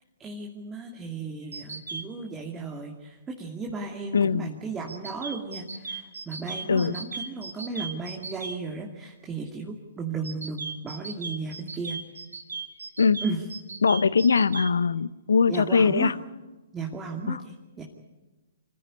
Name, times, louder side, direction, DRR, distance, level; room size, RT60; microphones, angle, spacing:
voice 1, 0.2-12.0 13.2-13.4 15.5-16.1 16.7-17.8, right 4 dB, 15° right, 1 dB, 2.5 m, -35 dB
sound 1, 1.5-2.0 4.9-8.6 10.2-14.7, right 4 dB, 85° right, 2.6 m, -36 dB
voice 2, 4.1-4.5 6.7-7.0 13.0-13.2 13.8-16.1 17.3-17.4, left 5 dB, 80° left, 18 dB, 0.8 m, -21 dB
25.5 x 14.5 x 9.8 m, 1.2 s
hypercardioid pair, 125°, 0 cm